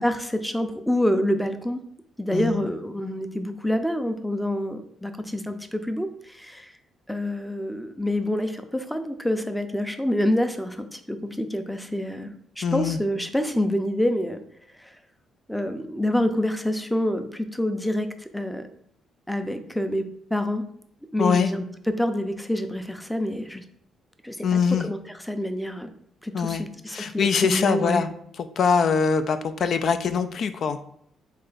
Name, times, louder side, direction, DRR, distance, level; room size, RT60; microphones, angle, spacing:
voice 1, 0.0-1.8 2.2-6.7 7.1-14.4 14.8-14.9 15.5-18.6 19.3-20.0 20.3-20.6 21.1-21.6 22.0-23.6 24.2-25.0 25.3-25.9 26.2-28.0, left 1 dB, 5° left, 7 dB, 0.5 m, -27 dB
voice 2, 12.6-13.0 21.2-21.5 24.4-24.9 26.3-28.1 28.4-30.8, left 6 dB, 60° left, 9 dB, 0.3 m, -23 dB
3.7 x 3.2 x 4.0 m, 0.69 s
cardioid pair, 90°, 0 cm